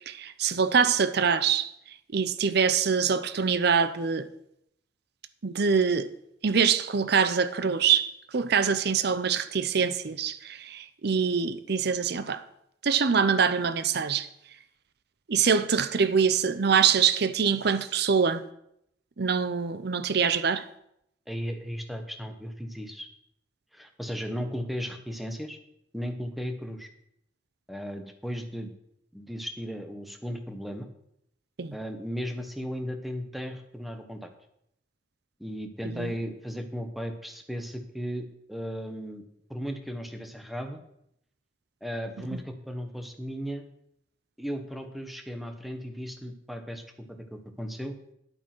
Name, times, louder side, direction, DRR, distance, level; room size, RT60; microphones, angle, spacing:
voice 1, 0.1-1.7 2.1-4.3 5.4-6.1 6.4-12.4 12.8-14.3 15.3-18.4 19.2-20.6 31.6-31.7 36.0-36.1, right 6 dB, 65° right, 0.7 m, -24 dB
voice 2, 21.3-23.1 23.7-25.6 25.9-26.9 27.7-28.7 29.1-30.9 31.7-34.3 35.4-39.2 39.5-40.8 41.8-43.6 44.4-47.9, equal, ahead, 1.2 m, -36 dB
11.0 x 8.5 x 6.1 m
head